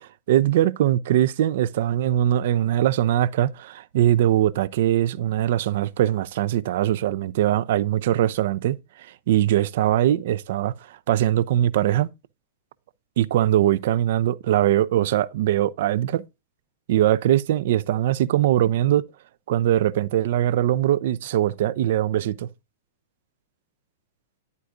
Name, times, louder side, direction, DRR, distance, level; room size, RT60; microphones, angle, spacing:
voice 1, 0.3-12.1 13.2-16.2 16.9-19.0 19.5-22.5, right 12 dB, 55° right, 0.5 m, -21 dB
10.0 x 8.3 x 2.6 m
figure-of-eight pair, 100°, 0 cm